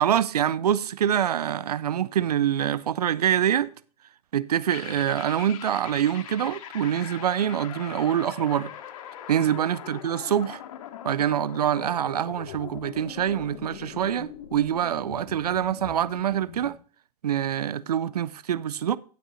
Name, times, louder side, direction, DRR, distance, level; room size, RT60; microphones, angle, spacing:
voice 1, 0.0-3.7 4.3-8.7 9.3-10.6 11.0-16.8 17.2-19.0, right 10 dB, 75° right, 0.5 m, -25 dB
sound 1, 4.7-16.8, left 10 dB, 60° left, 2.0 m, -41 dB
17.5 x 6.1 x 2.6 m
hypercardioid pair, 105°, 20 cm